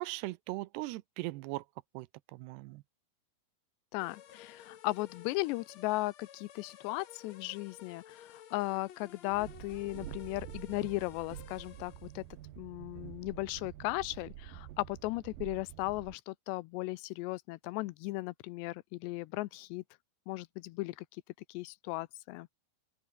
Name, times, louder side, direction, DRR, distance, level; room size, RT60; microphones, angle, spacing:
voice 1, 0.0-1.6 1.9-2.1 2.3-2.8, right 20 dB, 85° right, 2.7 m, -39 dB
voice 2, 3.9-12.2 12.6-19.8 20.3-21.1 21.5-22.5, left 20 dB, 85° left, 2.9 m, -36 dB
sound 1, 4.0-12.3, left 10 dB, 55° left, 2.0 m, -54 dB
Train, 9.3-16.2, right 13 dB, 65° right, 2.6 m, -48 dB
open air
omnidirectional pair, 4.9 m